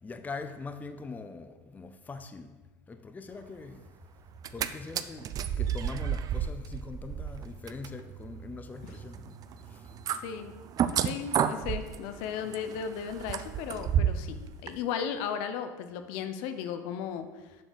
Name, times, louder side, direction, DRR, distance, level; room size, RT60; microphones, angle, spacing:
voice 1, 0.0-2.6 2.9-3.8 4.5-9.4 9.7-9.9, left 4 dB, 15° left, 0.6 m, -42 dB
sound 1, 4.3-4.7 4.9-14.3 14.7-14.8, right 9 dB, 40° right, 0.5 m, -32 dB
voice 2, 10.2-10.5 11.0-17.6, left 7 dB, 65° left, 0.9 m, -35 dB
7.3 x 5.0 x 6.9 m
supercardioid pair, 100°, 10 cm